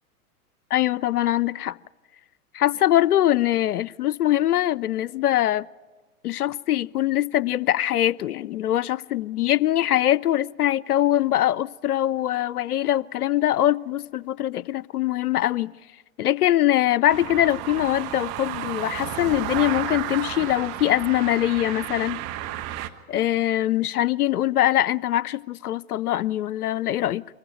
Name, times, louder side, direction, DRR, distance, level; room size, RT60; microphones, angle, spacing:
voice 1, 0.7-1.8 2.5-5.7 6.2-15.7 16.2-22.2 23.1-27.3, left 13 dB, 80° left, 0.6 m, -23 dB
sound 1, 17.1-22.9, right 13 dB, 35° right, 1.2 m, -32 dB
24.0 x 15.5 x 9.2 m
hypercardioid pair, 110°, 45 cm